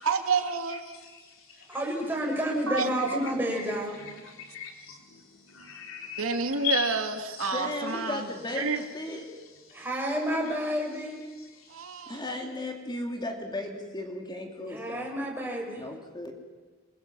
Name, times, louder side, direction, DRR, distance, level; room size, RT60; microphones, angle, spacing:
voice 1, 0.0-0.8 2.7-3.3 6.2-8.3 8.6-8.8 11.7-12.2, right 4 dB, 75° right, 5 dB, 2.3 m, -29 dB
voice 2, 0.7-1.8 3.1-3.2 4.0-7.0 7.4-7.5 9.7-9.8 11.4-11.9, left 7 dB, 65° left, 2 dB, 4.0 m, -38 dB
voice 3, 1.7-4.0 9.7-11.1 14.7-15.8, equal, 10° right, -1 dB, 6.6 m, -30 dB
voice 4, 7.5-9.3 12.1-15.1 15.8-16.3, left 2 dB, 20° left, 2 dB, 2.9 m, -35 dB
27.0 x 22.5 x 7.6 m, 1.4 s
head